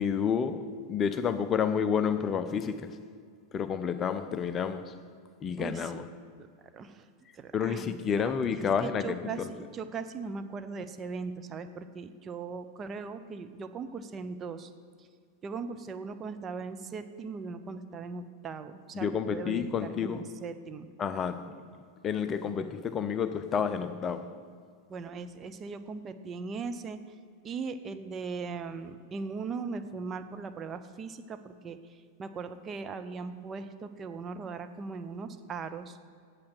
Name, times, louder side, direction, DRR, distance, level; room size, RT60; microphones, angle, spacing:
voice 1, 0.0-3.0 3.5-5.0 5.4-6.1 7.5-9.5 18.9-20.3 21.0-21.7 22.0-24.5, left 7 dB, 25° left, 0.6 m, -30 dB
voice 2, 5.6-5.9 6.4-6.5 6.7-7.1 7.3-14.7 15.0-15.1 15.4-20.9 24.9-27.0 27.4-36.0, right 4 dB, 25° right, 0.5 m, -39 dB
8.6 x 7.6 x 7.8 m
figure-of-eight pair, 90°, 0 cm